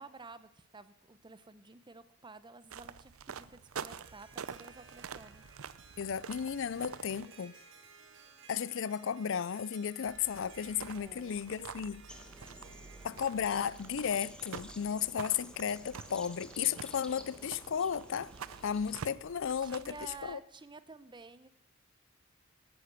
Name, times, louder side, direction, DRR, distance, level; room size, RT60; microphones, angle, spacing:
voice 1, 0.0-5.5 10.9-11.5 19.6-21.5, right 3 dB, 25° right, 0.8 m, -52 dB
sound 1, 2.7-7.3 10.0-20.3, right 6 dB, 80° right, 0.6 m, -47 dB
Harp, 3.6-14.1, right 5 dB, 65° right, 2.1 m, -58 dB
voice 2, 6.0-7.6 8.5-12.0 13.0-18.3 18.6-20.4, left 7 dB, 65° left, 0.5 m, -34 dB
sound 2, 12.1-19.0, left 1 dB, 5° left, 1.2 m, -53 dB
12.5 x 10.0 x 8.2 m
head